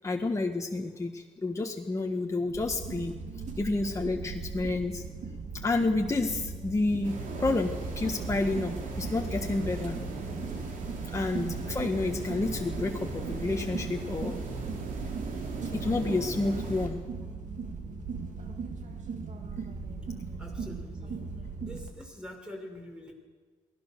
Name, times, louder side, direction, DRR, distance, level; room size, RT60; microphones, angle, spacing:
voice 1, 0.0-3.1 3.6-5.0 5.6-7.1 7.4-10.0 11.1-14.4 15.7-17.0, left 2 dB, 20° left, 2 dB, 1.6 m, -30 dB
sound 1, 2.5-21.9, right 4 dB, 65° right, 2.6 m, -39 dB
sound 2, 7.0-16.9, right 3 dB, 85° right, 3.6 m, -38 dB
voice 2, 20.4-21.2 21.6-23.1, left 1 dB, 5° right, 1 dB, 6.0 m, -45 dB
23.0 x 17.0 x 6.9 m, 1.5 s
cardioid pair, 85°, 13 cm